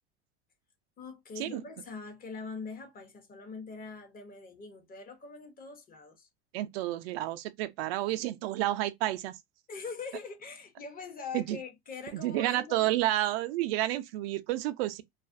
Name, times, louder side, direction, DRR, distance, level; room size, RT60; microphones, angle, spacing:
voice 1, 1.0-6.3 9.7-13.0, left 4 dB, 30° left, 0.8 m, -43 dB
voice 2, 6.5-9.3 11.3-11.6 12.1-15.0, right 15 dB, 75° right, 0.5 m, -30 dB
2.4 x 2.1 x 2.5 m
hypercardioid pair, 100°, 31 cm